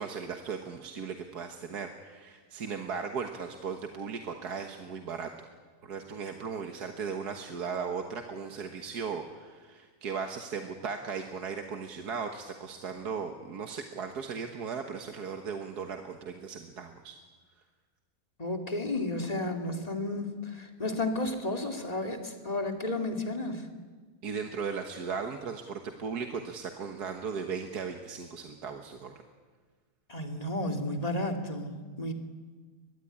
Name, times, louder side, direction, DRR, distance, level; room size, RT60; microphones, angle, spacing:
voice 1, 0.0-5.5 5.8-17.2 24.2-29.2, right 5 dB, 80° right, 5 dB, 1.9 m, -37 dB
voice 2, 18.4-23.7 30.1-32.1, left 2 dB, 25° left, 4 dB, 2.5 m, -32 dB
22.5 x 21.5 x 10.0 m, 1.5 s
omnidirectional pair, 1.7 m